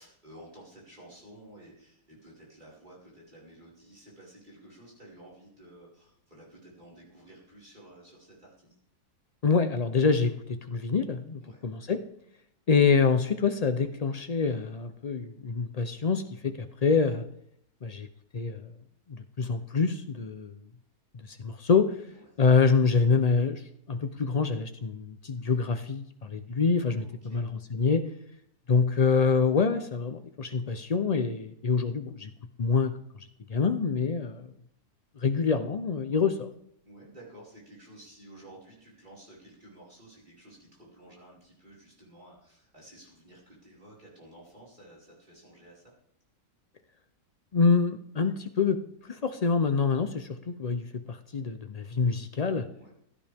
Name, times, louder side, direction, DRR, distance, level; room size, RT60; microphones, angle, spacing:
voice 1, 0.0-8.8 11.4-11.7 22.1-22.5 27.0-27.4 36.8-45.8 52.7-52.9, right 1 dB, 30° right, -6 dB, 5.3 m, -52 dB
voice 2, 9.4-12.0 12.7-17.2 17.8-18.1 18.3-18.7 19.1-20.6 21.1-22.0 22.4-28.0 28.7-32.3 32.6-33.0 33.5-34.5 35.2-36.5 47.5-48.8 49.1-52.7, left 5 dB, 85° left, 9 dB, 0.3 m, -26 dB
16.0 x 12.5 x 3.5 m, 0.72 s
omnidirectional pair, 1.7 m